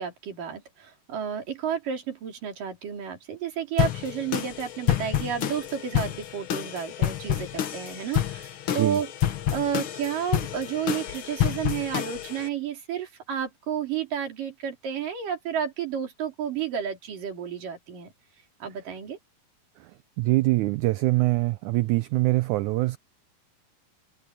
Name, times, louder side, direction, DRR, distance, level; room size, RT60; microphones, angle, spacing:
voice 1, 0.0-9.1 9.5-18.1 18.6-19.2, right 8 dB, 70° right, 5.6 m, -31 dB
sound 1, 3.8-12.5, left 11 dB, 70° left, 1.2 m, -29 dB
voice 2, 20.2-23.0, right 20 dB, 85° right, 1.7 m, -23 dB
omnidirectional pair, 4.0 m